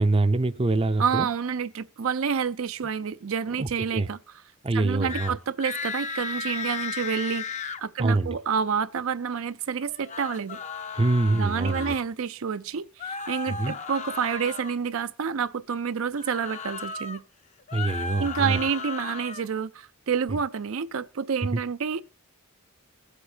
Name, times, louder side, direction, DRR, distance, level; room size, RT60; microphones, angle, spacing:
voice 1, 0.0-1.3 3.6-4.1 4.6-5.4 8.0-8.4 10.9-12.0 13.5-13.7 17.7-18.6 20.3-20.4 21.5-21.6, right 2 dB, 25° right, 0.5 m, -25 dB
voice 2, 1.0-4.2 4.7-10.6 11.3-17.2 18.2-22.0, right 6 dB, 75° right, 0.5 m, -29 dB
sound 1, 5.0-5.3 5.6-7.8 9.9-12.0 13.0-14.7 16.1-17.2 17.6-19.5, left 5 dB, 35° left, 0.6 m, -35 dB
22.5 x 8.2 x 2.8 m
head